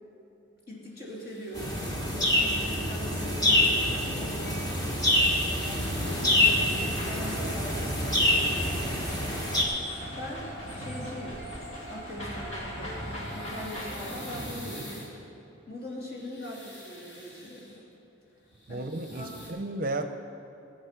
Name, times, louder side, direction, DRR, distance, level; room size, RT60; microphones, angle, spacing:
voice 1, 0.7-4.8 5.6-9.2 10.2-11.4 11.9-15.1 15.7-17.8 18.7-18.9 19.1-19.5, left 1 dB, 45° left, -4 dB, 2.7 m, -41 dB
sound 1, 1.0-2.3 4.3-6.4 7.6-10.0 12.7-15.1 15.9-17.8 18.4-19.5, equal, 65° left, 3.2 m, -47 dB
sound 2, 1.5-9.6, left 1 dB, 20° left, 1.3 m, -26 dB
sound 3, 5.7-14.5, equal, 85° left, 2.7 m, -39 dB
voice 2, 18.7-20.1, right 2 dB, 45° right, 8 dB, 0.6 m, -33 dB
16.0 x 7.9 x 5.9 m, 2.9 s
head